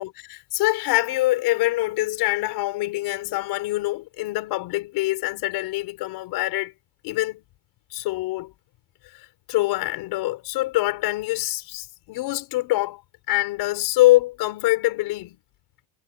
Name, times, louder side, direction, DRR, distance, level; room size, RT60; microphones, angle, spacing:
voice 1, 0.0-6.7 7.0-7.4 7.9-8.5 9.5-13.0 13.3-15.4, left 18 dB, 50° left, 5.1 m, -24 dB
cardioid pair, 175°, 49 cm